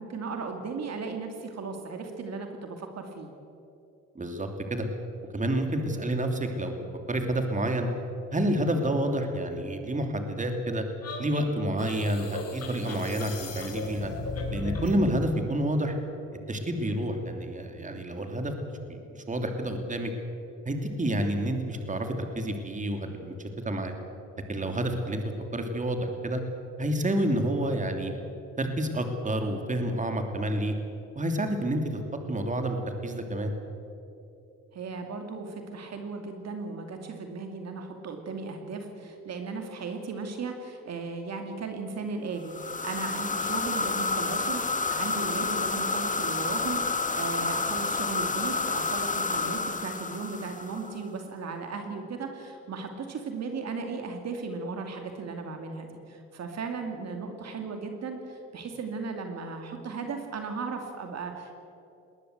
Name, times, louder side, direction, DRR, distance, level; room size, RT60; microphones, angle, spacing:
voice 1, 0.0-3.3 34.7-61.6, right 4 dB, 60° right, 4 dB, 2.5 m, -36 dB
voice 2, 4.1-4.9 5.3-7.9 8.3-10.8 11.2-14.1 14.5-15.9 16.5-18.5 18.9-20.1 20.7-23.9 24.5-25.2 25.5-26.4 26.8-28.1 28.6-30.7 31.2-32.0 32.3-33.5, right 1 dB, 25° right, 5 dB, 2.9 m, -29 dB
sound 1, 11.0-15.0, left 3 dB, 55° left, 4.1 m, -36 dB
sound 2, 42.5-51.0, left 4 dB, 25° left, 1.6 m, -29 dB
20.5 x 18.5 x 8.1 m, 2.8 s
cardioid pair, 90°, 30 cm